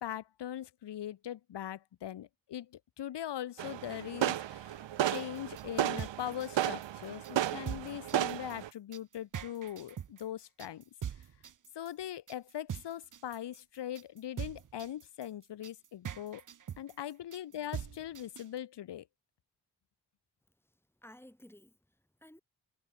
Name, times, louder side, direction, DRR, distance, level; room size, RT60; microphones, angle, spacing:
voice 1, 0.0-10.8 11.7-16.4 16.8-19.1, left 11 dB, 70° left, 0.9 m, -41 dB
sound 1, 3.6-8.7, right 12 dB, 85° right, 1.2 m, -34 dB
sound 2, 5.1-18.6, right 9 dB, 45° right, 0.7 m, -43 dB
voice 2, 20.6-22.4, left 1 dB, 5° left, 5.7 m, -56 dB
supercardioid pair, 40°, 43 cm